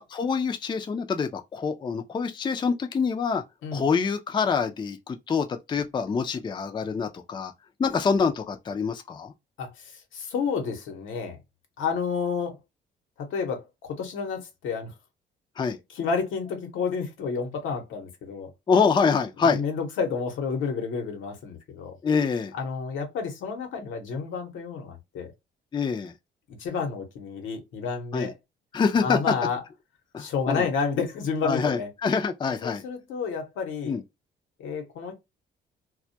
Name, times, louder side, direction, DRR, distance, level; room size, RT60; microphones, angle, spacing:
voice 1, 0.1-3.4 3.7-7.5 7.8-9.3 15.6-15.8 18.7-19.6 22.0-22.5 25.7-26.1 28.1-28.3 28.7-29.3 30.1-30.7 31.4-32.8 33.8-34.0, left 5 dB, 25° left, 0.4 m, -25 dB
voice 2, 9.6-11.4 11.8-12.6 13.2-14.9 15.9-18.5 19.4-22.0 22.5-25.3 26.5-28.3 29.0-29.6 30.2-31.9 32.6-34.0 34.6-35.1, left 5 dB, 85° left, 0.9 m, -30 dB
2.2 x 2.1 x 2.6 m
cardioid pair, 90°, 20 cm